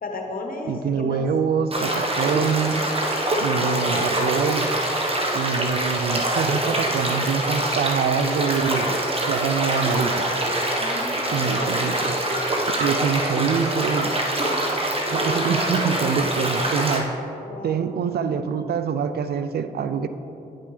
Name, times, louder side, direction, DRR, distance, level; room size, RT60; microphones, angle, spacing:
voice 1, 0.0-1.3 3.5-4.0 10.8-11.6 17.4-17.8, left 2 dB, 55° left, 2 dB, 1.1 m, -34 dB
voice 2, 0.7-2.8 3.4-4.7 5.3-9.0 9.3-10.3 11.3-12.2 12.8-14.1 15.1-17.1 17.6-20.1, right 6 dB, 70° right, 10 dB, 0.4 m, -25 dB
sound 1, 1.7-17.0, right 1 dB, 35° right, 1.2 m, -24 dB
9.9 x 5.4 x 3.3 m, 2.9 s
supercardioid pair, 45°, 17 cm